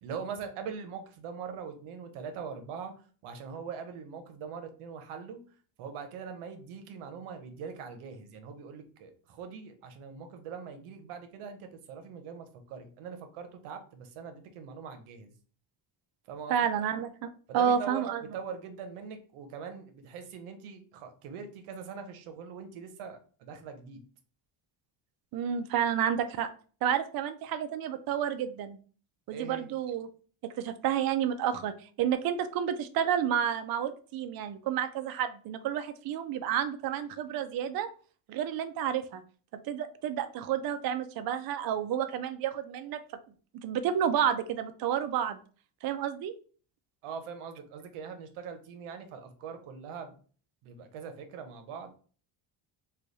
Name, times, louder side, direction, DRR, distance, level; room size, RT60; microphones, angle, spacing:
voice 1, 0.0-2.9 3.2-5.4 5.8-15.3 16.3-16.7 17.5-18.0 18.3-24.0 29.3-29.7 47.0-50.1 50.6-51.9, right 6 dB, 90° right, 7 dB, 0.8 m, -42 dB
voice 2, 16.5-18.2 25.3-26.5 26.8-28.8 29.3-30.1 30.6-31.7 32.0-37.9 38.3-39.2 39.5-43.0 43.5-45.4 45.8-46.3, right 9 dB, 50° right, 9 dB, 0.4 m, -30 dB
3.2 x 2.3 x 3.8 m, 0.41 s
cardioid pair, 110°, 49 cm